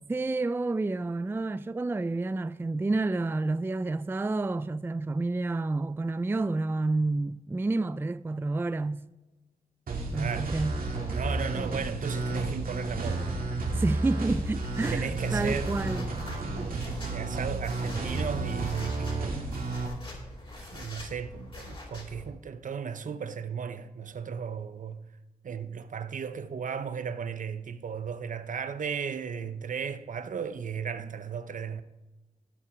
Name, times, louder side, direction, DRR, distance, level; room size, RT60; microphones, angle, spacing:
voice 1, 0.1-9.1 10.1-10.8 13.7-16.1, right 2 dB, 15° right, 0.3 m, -29 dB
sound 1, 9.9-19.9, right 2 dB, 85° right, 2.4 m, -32 dB
voice 2, 10.1-10.5 11.1-13.3 14.9-15.8 16.9-19.4 20.6-25.0 25.4-31.8, right 7 dB, 65° right, 0.7 m, -35 dB
sound 2, 13.7-22.3, left 1 dB, 35° left, 3.9 m, -45 dB
17.5 x 5.8 x 4.8 m
wide cardioid pair, 90°, 14 cm